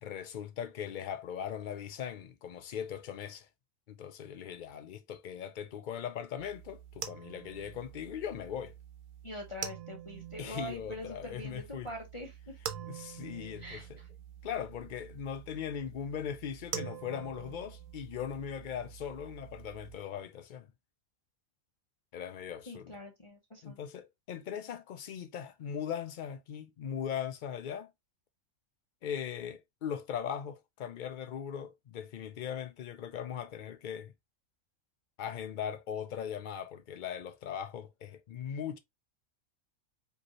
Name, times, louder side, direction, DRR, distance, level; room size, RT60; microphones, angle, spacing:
voice 1, 0.0-3.5 3.9-8.7 10.4-11.9 12.9-14.0 14.4-20.7 22.1-22.9 23.6-27.9 29.0-34.1 35.2-38.8, left 8 dB, 85° left, 0.4 m, -39 dB
sound 1, 6.4-20.0, right 9 dB, 75° right, 1.1 m, -46 dB
voice 2, 9.2-12.6 13.6-14.1 22.7-23.8, equal, 30° left, 0.8 m, -44 dB
5.0 x 2.9 x 3.0 m
omnidirectional pair, 1.4 m